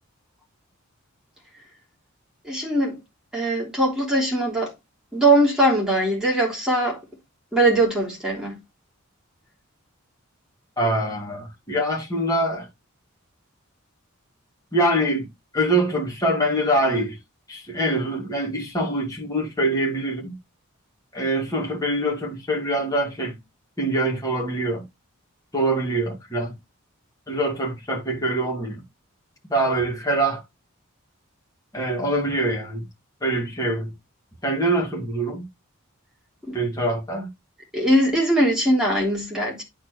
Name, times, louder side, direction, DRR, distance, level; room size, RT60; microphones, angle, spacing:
voice 1, 2.5-3.0 3.3-4.7 5.1-7.0 7.5-8.6 36.5-36.6 37.7-39.6, right 1 dB, 5° right, 3.2 m, -21 dB
voice 2, 10.8-12.7 14.7-15.3 15.5-17.2 17.5-20.4 21.1-23.4 23.8-24.8 25.5-26.6 27.3-28.8 29.5-30.4 31.7-32.8 33.2-33.9 34.4-35.4 36.5-37.3, right 1 dB, 15° left, 2.3 m, -24 dB
11.5 x 4.5 x 3.1 m
head